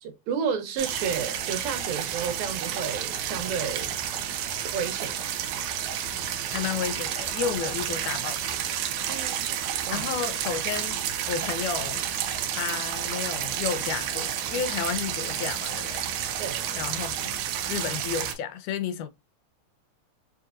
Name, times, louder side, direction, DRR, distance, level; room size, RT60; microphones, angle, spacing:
voice 1, 0.0-3.9 4.7-5.3 9.1-9.5 9.9-10.1 16.4-16.7, right 6 dB, 75° right, 2.2 m, -31 dB
sound 1, 0.8-18.3, right 9 dB, 90° right, 2.1 m, -30 dB
voice 2, 6.5-8.7 9.9-12.0 12.5-16.1 16.7-17.3 17.7-19.1, left 7 dB, 85° left, 2.1 m, -32 dB
5.3 x 2.8 x 2.4 m
omnidirectional pair, 3.5 m